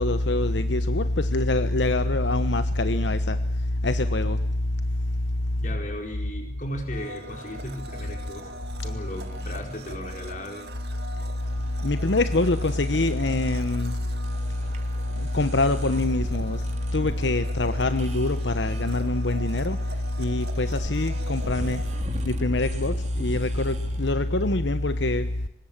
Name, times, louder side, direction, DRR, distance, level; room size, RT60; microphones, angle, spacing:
voice 1, 0.0-3.4 3.8-4.4 11.8-13.9 15.2-16.6 16.9-19.8 20.2-21.8 22.2-25.3, left 2 dB, 80° left, 1.1 m, -24 dB
voice 2, 5.6-8.5 8.8-10.7, equal, 45° left, 4.8 m, -36 dB
Domestic sounds home sounds, 6.9-22.0, right 1 dB, 60° right, 2.2 m, -43 dB
sound 1, 7.3-24.1, right 1 dB, 40° right, 3.2 m, -42 dB
24.5 x 21.0 x 7.5 m
head